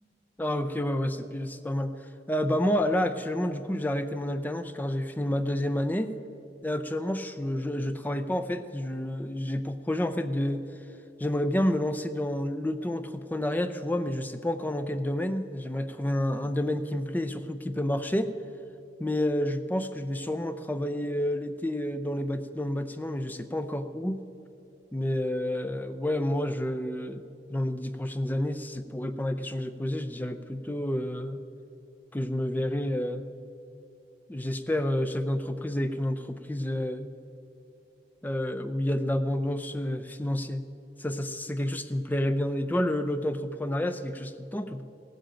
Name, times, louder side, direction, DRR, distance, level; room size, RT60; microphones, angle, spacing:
voice 1, 0.4-2.0 2.3-6.1 6.6-10.7 11.2-18.3 19.0-24.2 24.9-27.2 27.5-31.4 32.1-33.3 34.3-37.1 38.2-40.7 41.0-44.8, left 1 dB, 10° left, 9 dB, 0.4 m, -29 dB
16.5 x 7.7 x 8.9 m, 2.8 s
head